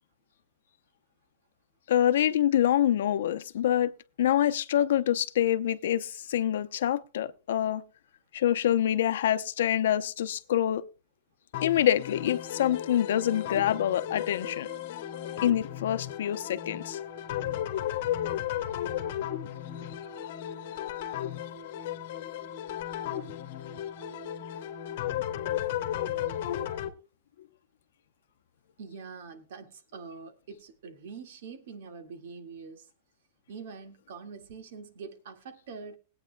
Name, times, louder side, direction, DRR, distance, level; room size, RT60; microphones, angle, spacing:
voice 1, 1.9-3.9 4.2-7.8 8.3-10.8 11.6-14.7 15.4-17.0, left 11 dB, 85° left, 0.7 m, -26 dB
sound 1, 11.5-26.9, left 11 dB, 60° left, 1.4 m, -34 dB
voice 2, 28.8-32.9 33.5-36.0, right 5 dB, 75° right, 1.9 m, -44 dB
21.0 x 8.8 x 2.2 m
supercardioid pair, 160°, 0 cm